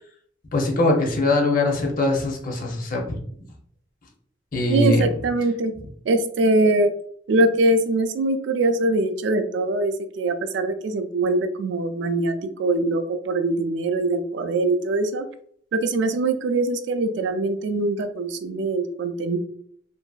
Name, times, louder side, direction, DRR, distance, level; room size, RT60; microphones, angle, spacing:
voice 1, 0.5-3.2 4.5-5.1, left 2 dB, 45° left, 1 dB, 0.7 m, -22 dB
voice 2, 4.7-5.7 6.1-6.9 7.3-15.3 15.7-19.4, right 2 dB, 65° right, 8 dB, 0.3 m, -22 dB
2.9 x 2.6 x 2.3 m, 0.62 s
head